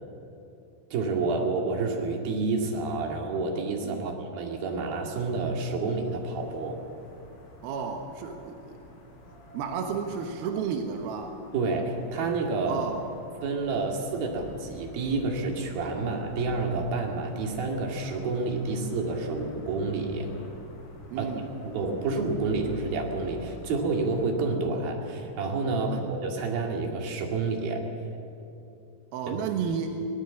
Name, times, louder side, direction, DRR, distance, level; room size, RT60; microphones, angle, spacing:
voice 1, 0.9-6.8 11.5-12.9 13.4-20.3 21.2-21.3 21.6-27.9 29.3-29.4 29.7-29.8, right 3 dB, 55° right, 1 dB, 3.6 m, -29 dB
sound 1, 5.9-24.3, left 1 dB, 80° left, 8.8 m, -48 dB
voice 2, 7.6-8.8 9.5-11.3 12.7-13.0 16.0-16.1 21.1-21.5 25.9-26.1 29.1-30.0, right 6 dB, 70° right, 4 dB, 2.3 m, -32 dB
22.5 x 18.5 x 7.3 m, 2.9 s
omnidirectional pair, 5.9 m